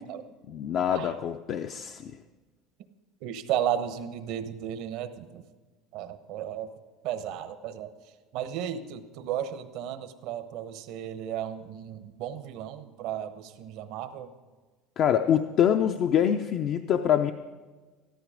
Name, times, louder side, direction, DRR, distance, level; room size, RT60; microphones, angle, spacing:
voice 1, 0.5-2.1 15.0-17.3, left 9 dB, 50° left, 6 dB, 0.6 m, -25 dB
voice 2, 3.2-5.4 5.9-6.7 7.0-7.9 8.3-14.3, right 10 dB, 70° right, 10 dB, 1.0 m, -34 dB
13.5 x 12.5 x 5.1 m, 1.3 s
supercardioid pair, 110°, 0 cm